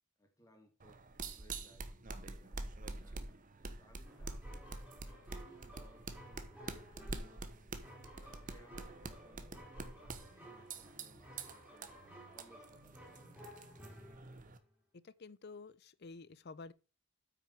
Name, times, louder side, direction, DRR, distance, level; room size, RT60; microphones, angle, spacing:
voice 1, 0.2-3.4 3.8-7.4 7.8-12.0 12.3-14.0, equal, 15° left, 2.7 m, -66 dB
sound 1, 0.8-14.6, right 3 dB, 40° right, 1.1 m, -47 dB
sound 2, 4.0-14.7, equal, 10° right, 3.4 m, -56 dB
voice 2, 15.0-16.7, left 4 dB, 50° left, 0.6 m, -51 dB
8.7 x 6.2 x 4.8 m
head